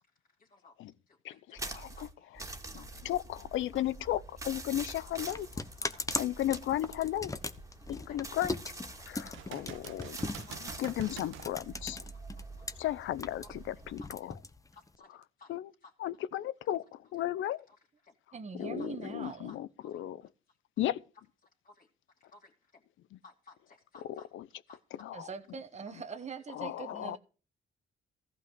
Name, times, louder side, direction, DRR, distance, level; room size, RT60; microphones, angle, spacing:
voice 1, 0.1-0.8 1.1-2.4 2.7-2.9 3.7-4.5 5.5-6.3 6.9-7.0 8.1-8.2 8.9-9.6 10.4-10.7 12.1-13.1 13.4-13.6 14.0-14.1 14.7-15.5 15.8-15.9 17.7-18.2 18.6-20.0 20.5-20.6 21.4-21.9 22.2-22.8 23.2-24.3 24.7-24.8, left 3 dB, 40° left, 2.9 m, -59 dB
sound 1, 1.6-14.0, right 2 dB, 15° right, 2.3 m, -46 dB
voice 2, 2.7-4.2 4.5-5.5 6.2-7.3 7.9-8.6 9.1-10.2 10.8-12.0 12.8-14.2 15.5-15.6 16.0-17.6 18.6-19.7 19.9-20.2 20.8-21.0 25.0-25.2 26.5-27.2, left 13 dB, 80° left, 0.8 m, -34 dB
sound 2, 4.5-12.7 13.0-15.0, left 2 dB, 15° left, 1.0 m, -39 dB
sound 3, 5.2-5.5 6.0-6.1 9.3-11.5 15.2-15.3, right 11 dB, 85° right, 1.2 m, -48 dB
voice 3, 18.3-19.5 25.1-27.2, right 5 dB, 35° right, 1.5 m, -42 dB
14.5 x 5.6 x 7.9 m
cardioid pair, 90°, 20 cm